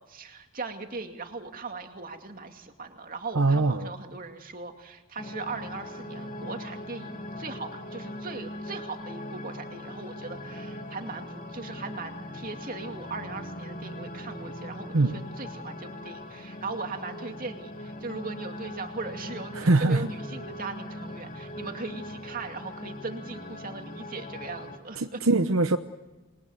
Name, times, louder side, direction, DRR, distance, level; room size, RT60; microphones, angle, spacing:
voice 1, 0.0-25.2, right 3 dB, 40° right, 5 dB, 2.5 m, -39 dB
voice 2, 3.3-3.9 14.9-15.2 19.5-20.1 25.0-25.8, right 2 dB, 65° right, 8 dB, 1.0 m, -22 dB
sound 1, 5.2-24.8, left 1 dB, 40° left, 2.4 m, -40 dB
28.0 x 22.0 x 8.2 m, 1.2 s
head